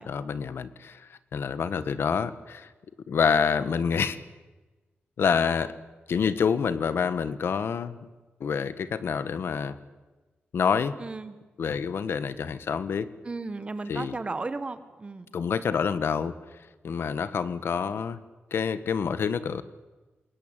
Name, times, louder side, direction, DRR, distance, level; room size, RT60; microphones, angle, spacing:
voice 1, 0.1-2.7 3.1-4.2 5.2-5.7 6.1-8.1 8.4-9.8 10.5-11.0 11.6-13.1 13.9-14.2 15.3-16.3 16.8-18.2 18.5-19.6, left 6 dB, 75° left, 14 dB, 1.4 m, -27 dB
voice 2, 11.0-11.3 13.2-15.2, right 3 dB, 30° right, 11 dB, 1.7 m, -34 dB
28.0 x 21.5 x 9.1 m, 1.2 s
wide cardioid pair, 170°, 4 cm